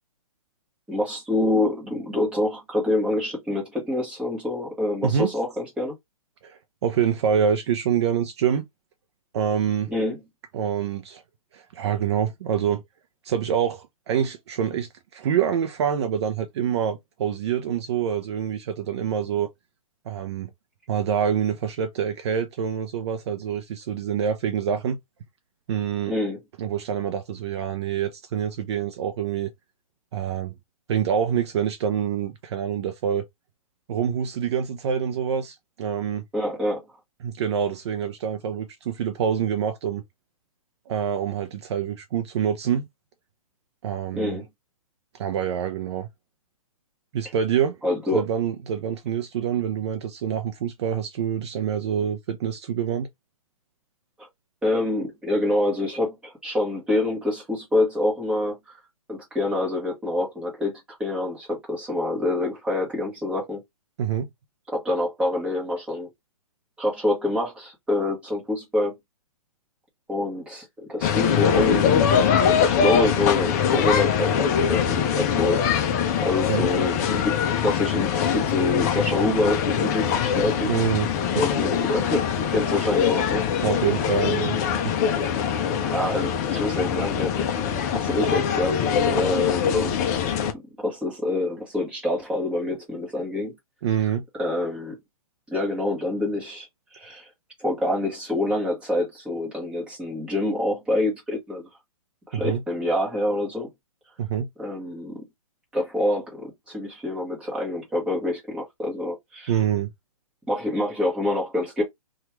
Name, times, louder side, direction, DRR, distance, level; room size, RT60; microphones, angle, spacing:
voice 1, 0.9-5.9 9.9-10.2 26.1-26.4 36.3-36.8 44.1-44.4 47.8-48.2 54.2-54.3 54.6-58.8 59.1-63.6 64.7-66.1 66.8-69.0 70.1-71.9 72.6-75.6 76.2-80.7 81.4-83.5 85.8-88.7 89.0-89.9 90.5-93.5 94.4-95.0 95.5-96.7 96.9-97.3 97.6-101.7 102.3-103.7 104.6-105.2 105.7-109.5 110.5-111.8, left 2 dB, 5° right, 1.1 m, -26 dB
voice 2, 6.4-8.6 9.3-9.9 10.5-11.2 11.5-12.8 13.2-19.5 20.1-20.5 20.9-25.0 25.7-26.1 26.6-29.5 30.1-30.5 30.9-33.3 33.9-36.2 37.2-40.0 40.9-42.9 43.8-44.4 45.2-46.1 47.1-47.8 48.1-53.1 64.0-64.3 76.5-76.7 80.6-81.4 83.6-84.6 84.8-84.9 93.8-94.2 102.3-102.6 104.2-104.5 109.5-109.9, right 8 dB, 45° right, 0.5 m, -26 dB
sound 1, 71.0-90.5, left 7 dB, 30° left, 0.4 m, -23 dB
2.9 x 2.4 x 3.0 m
hypercardioid pair, 140°, 19 cm